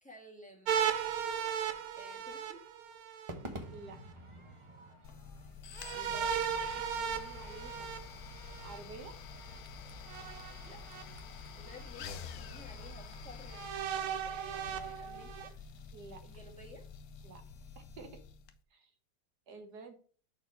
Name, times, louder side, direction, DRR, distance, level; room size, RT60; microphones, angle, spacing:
voice 1, 0.0-0.8 2.0-2.6 6.1-6.7 10.6-10.8 11.3-13.7 14.2-15.5 16.2-16.8, left 1 dB, 5° left, 1 dB, 1.3 m, -54 dB
sound 1, 0.7-3.3 5.8-8.8 10.1-11.0 11.8-11.9 13.5-15.5, right 8 dB, 80° right, 1.6 m, -36 dB
Crowd / Fireworks, 3.3-17.7, right 1 dB, 35° right, 0.5 m, -54 dB
sound 2, 5.0-18.5, left 5 dB, 75° left, 0.8 m, -48 dB
voice 2, 5.9-6.3 6.7-7.9 8.6-9.1 15.9-16.2 17.2-17.4 17.7-18.2 18.7-18.9 19.5-19.9, right 4 dB, 55° right, 6 dB, 1.6 m, -50 dB
6.6 x 4.3 x 5.1 m, 0.43 s
omnidirectional pair, 2.4 m